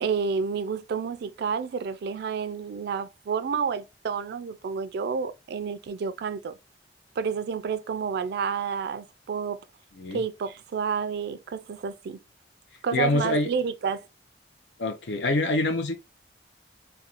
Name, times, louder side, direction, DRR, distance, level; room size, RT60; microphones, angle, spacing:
voice 1, 0.0-6.5 7.2-9.6 10.1-12.2 12.8-14.1, right 6 dB, 65° right, 0.3 m, -30 dB
voice 2, 12.9-13.5 14.8-16.0, left 2 dB, 80° left, 0.5 m, -25 dB
2.4 x 2.2 x 2.8 m
head